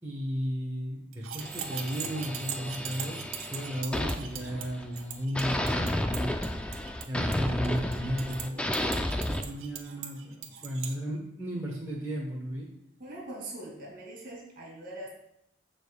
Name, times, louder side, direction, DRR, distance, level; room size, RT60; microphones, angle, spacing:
voice 1, 0.0-6.3 7.1-12.7, equal, 15° right, -4 dB, 1.1 m, -34 dB
sound 1, 1.1-10.9, right 8 dB, 80° right, 0.9 m, -41 dB
sound 2, 1.4-5.0 5.3-9.4, left 1 dB, 5° left, 0.3 m, -32 dB
voice 2, 13.0-15.1, right 1 dB, 45° right, -1 dB, 2.5 m, -42 dB
15.0 x 5.1 x 2.3 m, 0.78 s
head